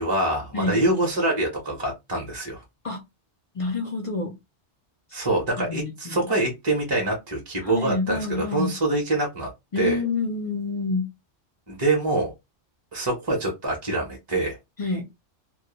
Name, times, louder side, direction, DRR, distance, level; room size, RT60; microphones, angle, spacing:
voice 1, 0.0-2.6 5.1-9.5 9.8-10.0 11.7-12.3 12.9-14.6, right 2 dB, 30° right, 0.6 m, -25 dB
voice 2, 3.5-4.3 5.1-5.3 5.6-6.2 7.6-8.7 9.7-11.0 14.8-15.1, left 3 dB, 50° left, 0.4 m, -28 dB
2.2 x 2.1 x 2.9 m
omnidirectional pair, 1.2 m